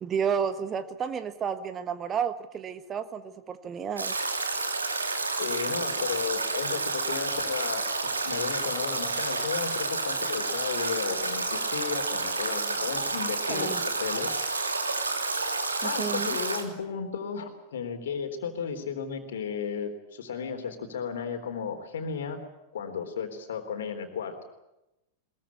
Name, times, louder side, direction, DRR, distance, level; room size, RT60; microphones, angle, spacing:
voice 1, 0.0-4.1 13.5-13.8 15.8-16.4, right 7 dB, 25° right, 12 dB, 1.4 m, -31 dB
Stream / Drip / Trickle dribble, 4.0-16.6, right 3 dB, 75° right, 2.8 m, -30 dB
voice 2, 5.4-7.9 8.2-14.3 15.8-22.4 22.7-24.3, left 6 dB, 60° left, 6 dB, 3.8 m, -34 dB
22.0 x 21.5 x 8.6 m, 0.94 s
figure-of-eight pair, 90°, 0 cm